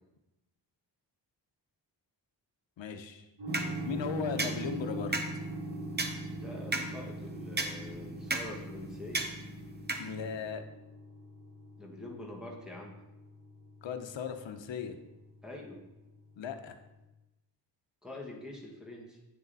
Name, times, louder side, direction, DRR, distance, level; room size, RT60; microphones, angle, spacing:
voice 1, 2.8-3.3 3.8-5.1 10.0-10.6 13.8-15.0 16.4-16.8, left 6 dB, 85° left, 7 dB, 0.9 m, -37 dB
sound 1, 3.4-17.1, equal, 80° right, 2.6 m, -46 dB
sound 2, 3.5-10.5, right 2 dB, 25° right, 0.7 m, -36 dB
voice 2, 6.2-9.3 11.8-13.0 15.4-15.8 18.0-19.2, left 1 dB, ahead, -3 dB, 1.4 m, -45 dB
8.4 x 6.7 x 4.1 m, 0.99 s
wide cardioid pair, 160°, 44 cm